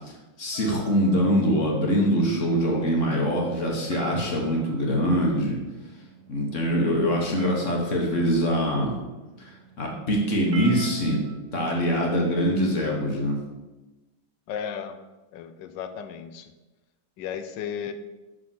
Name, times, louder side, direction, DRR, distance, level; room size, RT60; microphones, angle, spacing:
voice 1, 0.4-5.6 6.3-9.0 9.4-9.5 9.8-11.2 11.5-13.4, equal, 45° left, -1 dB, 1.4 m, -23 dB
sound 1, 0.5-11.3, right 4 dB, 40° right, 1.7 m, -46 dB
voice 2, 14.5-15.0 15.3-16.5 17.2-17.9, left 8 dB, 75° left, 9 dB, 1.2 m, -34 dB
5.9 x 5.3 x 5.7 m, 1.1 s
omnidirectional pair, 2.1 m